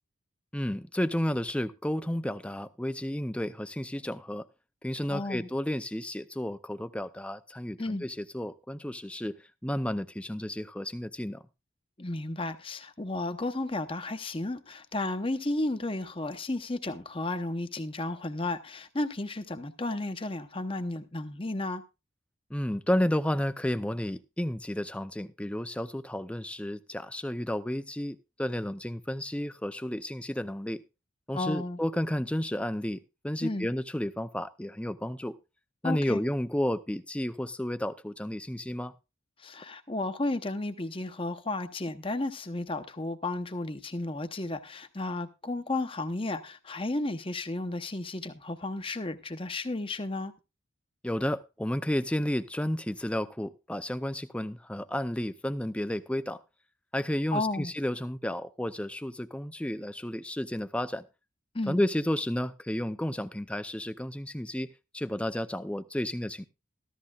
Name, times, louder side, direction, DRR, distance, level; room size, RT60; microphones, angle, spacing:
voice 1, 0.5-4.5 4.8-9.3 9.6-11.4 22.5-30.8 31.3-35.4 35.8-38.9 51.0-56.4 56.9-61.1 61.7-66.5, left 1 dB, 5° left, 0.5 m, -32 dB
voice 2, 5.1-5.5 7.8-8.0 12.0-21.8 31.3-31.8 33.4-33.7 35.8-36.2 39.4-50.3 57.3-57.7 61.5-61.8, left 2 dB, 25° left, 0.8 m, -33 dB
14.5 x 13.0 x 2.4 m
head